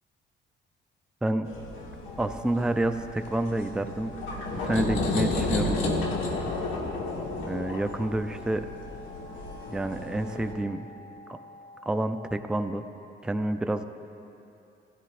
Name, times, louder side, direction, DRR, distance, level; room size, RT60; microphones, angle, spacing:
sound 1, 1.5-10.5, left 2 dB, 85° left, 1.4 m, -32 dB
sound 2, 2.1-12.1, left 1 dB, 25° left, 1.9 m, -49 dB
voice 1, 2.2-4.1 4.5-5.8 7.5-8.7 9.7-10.9 11.9-12.8 13.2-13.8, right 1 dB, 5° right, 8 dB, 0.4 m, -28 dB
16.0 x 13.0 x 2.5 m, 2.7 s
cardioid pair, 90°, 20 cm